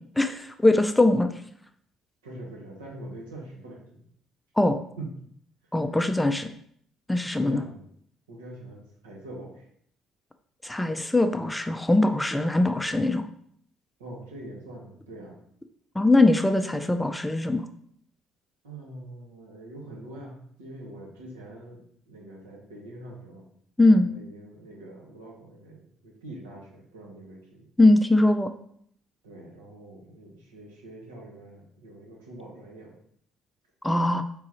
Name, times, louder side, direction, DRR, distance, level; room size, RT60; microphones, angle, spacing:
voice 1, 0.2-1.3 4.6-4.8 5.7-6.5 7.1-7.6 10.6-13.3 16.0-17.7 23.8-24.1 27.8-28.5 33.8-34.2, left 2 dB, 10° left, 8 dB, 0.4 m, -21 dB
voice 2, 2.2-4.0 5.0-5.1 7.3-7.8 8.3-9.6 14.0-15.4 18.6-21.8 22.1-23.4 24.0-27.6 29.2-33.0, right 1 dB, 75° right, -3 dB, 1.2 m, -43 dB
4.7 x 3.8 x 2.9 m, 0.66 s
figure-of-eight pair, 50°, 0 cm